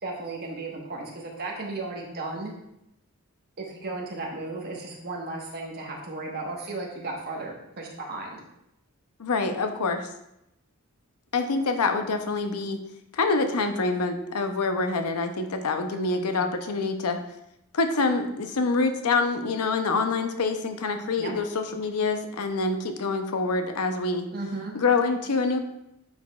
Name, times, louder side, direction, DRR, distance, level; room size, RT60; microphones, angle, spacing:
voice 1, 0.0-2.5 3.6-8.4 15.9-16.4 21.2-21.4 24.3-24.7, right 2 dB, 45° right, -1 dB, 1.3 m, -35 dB
voice 2, 9.2-10.1 11.3-12.8 13.1-17.2 17.7-24.3 24.7-25.6, left 3 dB, 85° left, 7 dB, 0.6 m, -26 dB
9.5 x 4.8 x 2.4 m, 0.83 s
head